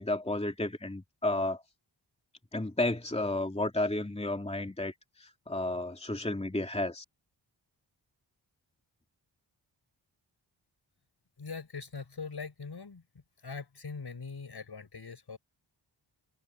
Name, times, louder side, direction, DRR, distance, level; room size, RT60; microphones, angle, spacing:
voice 1, 0.0-1.6 2.5-7.0, left 2 dB, 15° left, 2.8 m, -32 dB
voice 2, 11.4-13.0 13.4-15.4, left 5 dB, 60° left, 5.6 m, -42 dB
wide cardioid pair, 85°, 45 cm